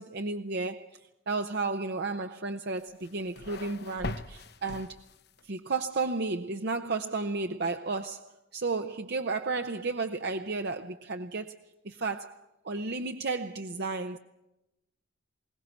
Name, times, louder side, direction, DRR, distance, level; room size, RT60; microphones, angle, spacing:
voice 1, 0.0-5.0 5.4-11.6 11.8-14.2, right 3 dB, 55° right, 0.7 m, -33 dB
sound 1, 2.8-5.5, left 3 dB, 55° left, 0.9 m, -41 dB
21.5 x 18.5 x 8.2 m
head